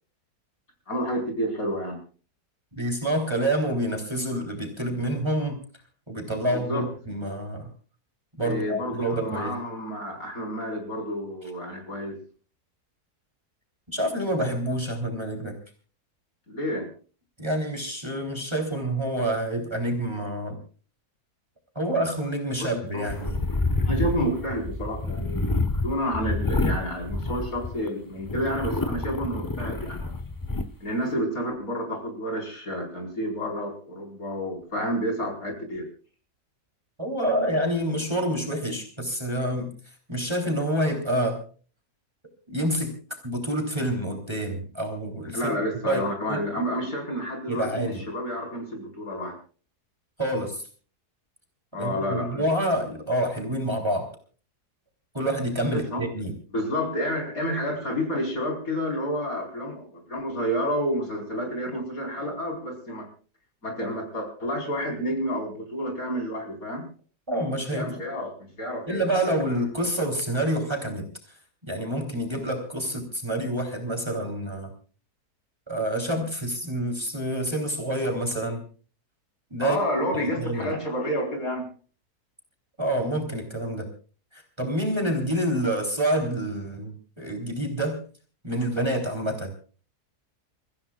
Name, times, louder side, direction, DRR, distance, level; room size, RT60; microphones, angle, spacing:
voice 1, 0.9-2.0 6.5-6.9 8.4-12.2 16.5-16.9 22.6-22.7 22.9-23.3 23.9-25.4 25.8-30.2 30.8-35.8 45.3-49.4 51.7-52.5 55.7-56.0 56.5-63.1 63.6-66.9 67.7-69.5 79.6-81.7, equal, 60° left, 1 dB, 5.2 m, -30 dB
voice 2, 2.7-5.6 6.1-7.7 8.4-9.5 13.9-15.6 17.4-20.6 21.8-23.4 37.0-39.7 40.1-41.4 42.5-42.9 43.2-45.6 45.8-46.4 47.5-48.0 50.2-50.6 51.8-54.1 55.1-56.3 67.3-67.9 68.9-71.1 71.7-74.7 75.7-78.6 79.5-79.8 80.1-80.7 82.8-83.9 84.3-88.0 88.4-89.5, right 1 dB, 15° right, 2 dB, 3.5 m, -27 dB
sound 1, 23.1-27.9 28.3-30.7, left 2 dB, 15° left, 0.8 m, -28 dB
29.5 x 15.5 x 2.4 m, 0.39 s
omnidirectional pair, 1.7 m